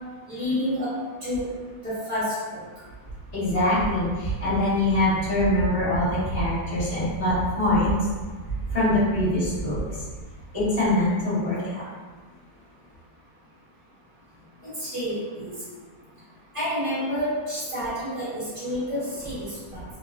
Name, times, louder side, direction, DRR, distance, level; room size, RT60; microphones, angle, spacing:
voice 1, 0.3-1.5 1.8-2.6 14.6-15.5 16.5-19.8, equal, 20° right, -11 dB, 1.0 m, -29 dB
voice 2, 3.3-7.9 8.7-10.0 10.5-11.8, left 1 dB, 20° left, -15 dB, 1.1 m, -23 dB
3.0 x 2.2 x 2.4 m, 1.4 s
omnidirectional pair, 1.8 m